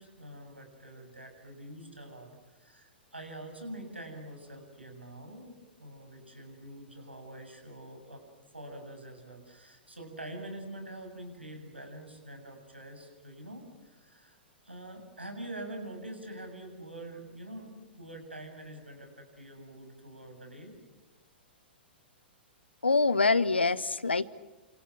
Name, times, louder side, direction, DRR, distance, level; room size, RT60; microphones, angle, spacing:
voice 1, 0.0-2.3 2.6-8.2 8.5-14.4 14.6-20.7, right 1 dB, 85° right, 4 dB, 7.5 m, -45 dB
voice 2, 22.8-24.3, left 3 dB, 80° left, 18 dB, 1.1 m, -25 dB
29.5 x 27.5 x 6.2 m, 1.2 s
figure-of-eight pair, 110°, 6 cm